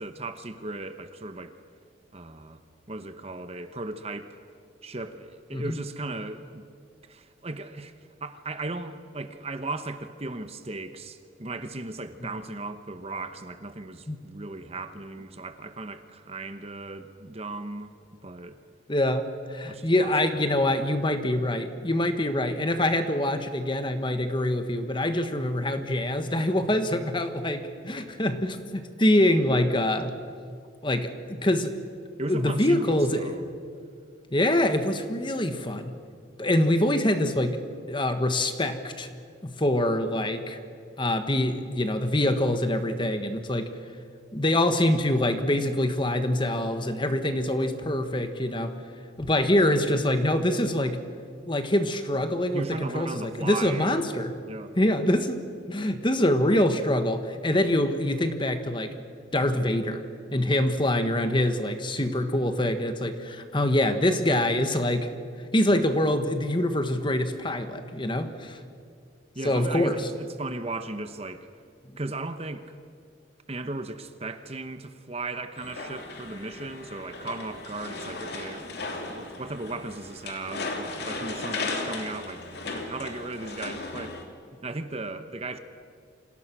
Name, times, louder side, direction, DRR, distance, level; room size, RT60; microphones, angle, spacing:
voice 1, 0.0-1.5 2.1-2.6 2.9-4.4 4.8-6.6 7.0-7.9 8.2-18.0 18.2-18.6 19.7-20.8 32.2-33.5 52.5-54.0 54.5-54.8 69.3-71.5 72.0-72.8 73.5-84.2 84.6-85.6, right 2 dB, 30° right, 9 dB, 1.1 m, -36 dB
voice 2, 18.9-19.2 19.5-30.1 30.8-31.8 32.3-33.3 34.3-35.9 36.4-37.6 37.9-39.1 39.4-40.6 41.0-43.7 44.3-48.7 49.2-51.0 51.5-54.3 54.8-55.4 55.7-58.9 59.3-60.0 60.3-65.1 65.5-68.6 69.4-70.0, left 1 dB, 25° left, 8 dB, 1.4 m, -25 dB
sound 1, 75.6-84.2, left 3 dB, 55° left, 2.9 m, -36 dB
28.5 x 25.5 x 6.2 m, 2.2 s
head